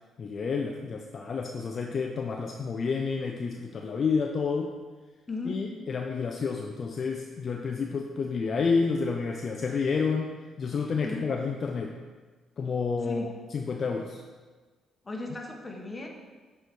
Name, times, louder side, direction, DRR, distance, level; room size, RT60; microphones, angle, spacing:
voice 1, 0.2-4.7 5.5-12.0 12.6-13.3 13.5-14.2, left 5 dB, 45° left, 2 dB, 0.5 m, -30 dB
voice 2, 5.3-5.7 11.0-11.3 13.0-13.4 15.0-16.1, left 2 dB, 25° left, 1 dB, 1.3 m, -37 dB
7.6 x 4.8 x 4.6 m, 1.4 s
cardioid pair, 90°, 0 cm